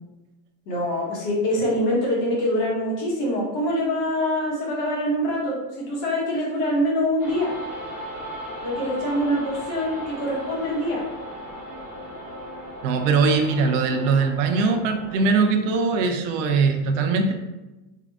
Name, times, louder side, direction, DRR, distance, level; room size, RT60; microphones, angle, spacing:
voice 1, 0.7-7.5 8.6-11.0, equal, 50° left, -4 dB, 1.4 m, -24 dB
sound 1, 7.2-15.3, equal, 15° left, 1.3 m, -37 dB
voice 2, 12.8-17.3, right 4 dB, 65° right, 4 dB, 0.6 m, -21 dB
3.7 x 2.5 x 3.5 m, 1.1 s
cardioid pair, 175°, 42 cm